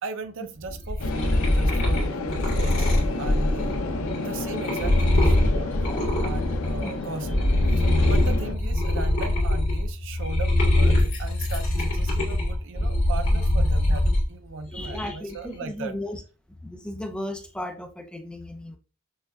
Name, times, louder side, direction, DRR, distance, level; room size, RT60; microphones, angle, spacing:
voice 1, 0.0-3.8 4.2-15.9, right 4 dB, 65° right, 0.5 m, -38 dB
sound 1, 0.7-6.9 7.2-14.2 14.6-15.3, left 1 dB, 65° left, 2.1 m, -23 dB
sound 2, 1.0-8.5, left 3 dB, 80° left, 0.5 m, -31 dB
voice 2, 14.7-16.2 16.6-18.8, left 1 dB, 5° left, 0.5 m, -35 dB
6.3 x 2.3 x 2.3 m
head